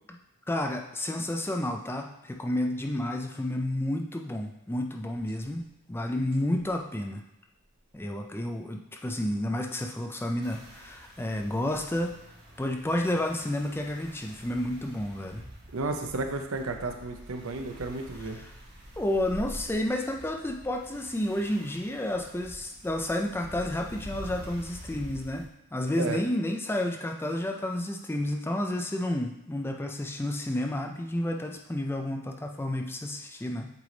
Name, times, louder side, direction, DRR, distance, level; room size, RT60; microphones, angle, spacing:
voice 1, 0.5-5.6 5.9-7.2 7.9-12.2 12.6-15.4 18.3-18.5 19.0-33.7, left 1 dB, 10° left, 2 dB, 0.3 m, -31 dB
sound 1, 5.0-19.9, equal, 90° right, 2.0 m, -53 dB
sound 2, 10.4-25.4, equal, 45° right, 1.5 m, -48 dB
voice 2, 15.7-18.4 25.9-26.2, right 3 dB, 70° right, 5 dB, 0.7 m, -33 dB
8.1 x 3.4 x 3.9 m, 0.91 s
head